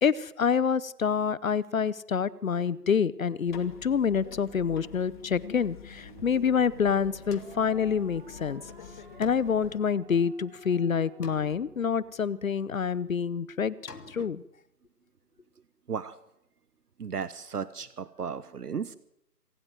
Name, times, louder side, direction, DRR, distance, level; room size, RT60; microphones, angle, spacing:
voice 1, 0.0-8.6 9.2-13.7 14.1-14.4, left 6 dB, 55° left, 21 dB, 0.9 m, -27 dB
sound 1, 3.5-9.8, left 7 dB, 30° left, 2.3 m, -47 dB
sound 2, 5.9-12.4, right 6 dB, 35° right, 2.9 m, -52 dB
sound 3, 7.3-8.5 9.2-10.6 11.2-12.6 13.9-14.4, left 4 dB, 70° left, 2.8 m, -50 dB
voice 2, 17.0-19.0, right 6 dB, 70° right, 16 dB, 1.2 m, -35 dB
26.5 x 18.5 x 7.7 m, 0.81 s
figure-of-eight pair, 155°, 48 cm